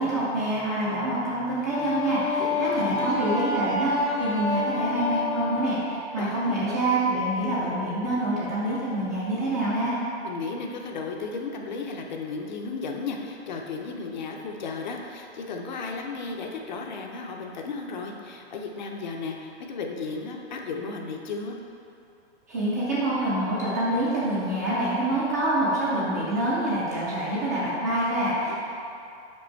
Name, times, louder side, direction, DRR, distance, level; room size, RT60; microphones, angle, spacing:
voice 1, 0.0-10.0 22.5-28.5, right 1 dB, 15° right, -8 dB, 0.4 m, -26 dB
Wind instrument woodwind instrument, 1.7-5.9, left 3 dB, 80° left, 1.3 m, -28 dB
voice 2, 2.4-3.1 6.1-6.6 10.2-21.6 28.5-28.6, left 4 dB, 40° left, 2 dB, 0.6 m, -34 dB
5.2 x 4.7 x 4.4 m, 2.6 s
hypercardioid pair, 160°, 34 cm